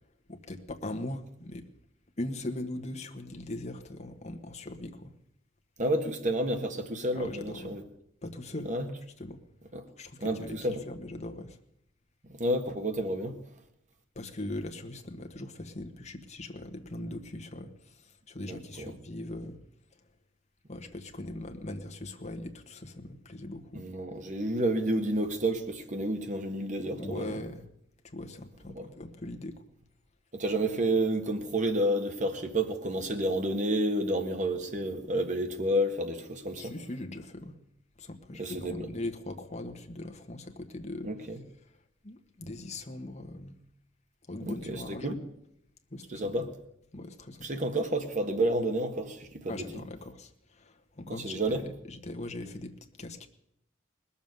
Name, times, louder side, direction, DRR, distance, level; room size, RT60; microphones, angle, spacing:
voice 1, 0.3-1.7 2.2-5.1 7.1-7.7 8.2-8.7 9.2-9.4 10.0-10.6 10.8-11.6 14.1-19.6 20.7-23.8 27.0-27.6 28.0-29.6 36.6-37.6 38.0-41.1 42.0-43.6 44.3-45.2 45.9-46.5 46.9-47.5 49.5-53.3, left 1 dB, 35° left, 1.4 m, -40 dB
voice 2, 5.8-7.8 8.6-8.9 9.7-9.9 10.2-10.8 12.3-13.4 18.5-18.9 23.7-27.4 28.7-28.9 30.3-36.7 38.4-38.9 41.0-41.4 44.4-45.1 46.1-46.5 47.4-49.8 51.1-51.6, right 1 dB, 40° right, 1.6 m, -30 dB
20.0 x 7.2 x 9.4 m
head